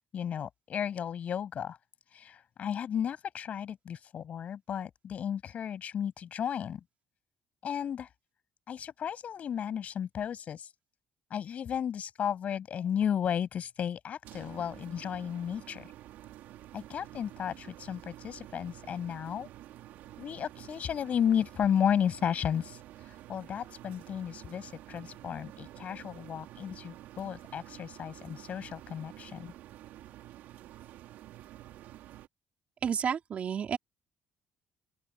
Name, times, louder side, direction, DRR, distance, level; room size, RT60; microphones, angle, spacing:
voice 1, 0.1-1.8 2.1-6.8 7.6-8.1 8.7-10.7 11.3-15.9 16.7-19.5 20.2-29.5, left 8 dB, 50° left, 7.9 m, -33 dB
sound 1, 14.2-32.3, right 14 dB, 80° right, 3.2 m, -50 dB
voice 2, 32.8-33.8, right 7 dB, 50° right, 4.2 m, -31 dB
open air
cardioid pair, 100°, 3 cm